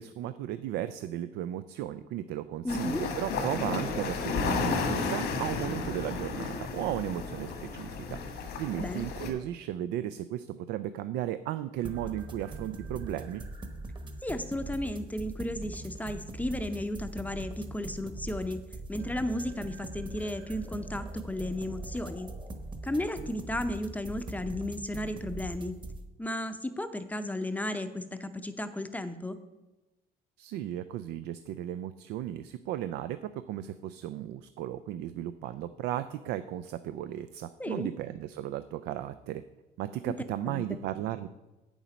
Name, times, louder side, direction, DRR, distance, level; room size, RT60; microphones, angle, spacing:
voice 1, 0.0-8.2 8.6-13.4 30.4-39.4 39.8-41.3, right 12 dB, 85° right, 12 dB, 0.4 m, -35 dB
voice 2, 2.6-3.0 8.8-9.1 14.2-18.6 18.9-22.3 22.8-25.7 26.2-29.4 37.6-37.9 40.0-40.1 40.5-40.8, left 1 dB, 10° left, 9 dB, 0.6 m, -34 dB
sound 1, 2.7-9.3, left 4 dB, 80° left, 1.7 m, -33 dB
sound 2, 11.8-26.0, right 2 dB, 25° right, 1.1 m, -41 dB
8.3 x 7.1 x 5.1 m, 1.1 s
cardioid pair, 110°, 17 cm